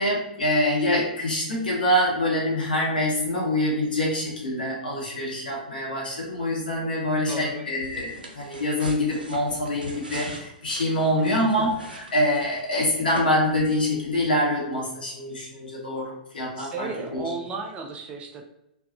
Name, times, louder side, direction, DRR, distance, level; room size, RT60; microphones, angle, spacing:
voice 1, 0.0-17.2, left 1 dB, 80° left, -4 dB, 1.0 m, -25 dB
voice 2, 7.3-7.7 11.2-11.7 16.6-18.4, right 4 dB, 25° right, 3 dB, 0.4 m, -34 dB
sound 1, 7.8-12.7 13.1-13.2, right 1 dB, 90° right, 0.5 m, -40 dB
2.6 x 2.3 x 2.4 m, 0.85 s
figure-of-eight pair, 110°, 5 cm